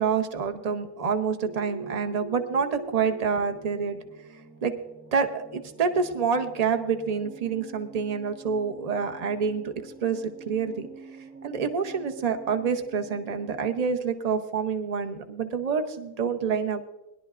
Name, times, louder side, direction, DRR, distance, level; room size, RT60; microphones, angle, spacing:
voice 1, 0.0-4.0 4.6-4.7 5.1-10.9 11.4-16.8, right 6 dB, 35° right, 7 dB, 0.7 m, -27 dB
sound 1, 1.4-14.0, right 5 dB, 50° right, 2.0 m, -45 dB
20.5 x 11.5 x 2.5 m, 1.0 s
omnidirectional pair, 1.6 m